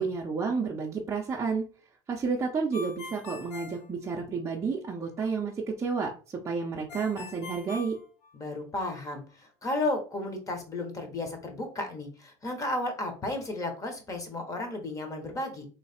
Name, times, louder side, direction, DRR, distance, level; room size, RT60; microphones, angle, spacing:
voice 1, 0.0-1.7 2.1-8.0, right 5 dB, 20° right, -3 dB, 0.6 m, -31 dB
Ringtone, 2.7-4.6 6.9-8.8, left 3 dB, 65° left, 1.1 m, -43 dB
voice 2, 8.3-15.7, left 2 dB, 25° left, 4 dB, 1.1 m, -33 dB
3.2 x 3.0 x 4.3 m, 0.37 s
supercardioid pair, 135°, 14 cm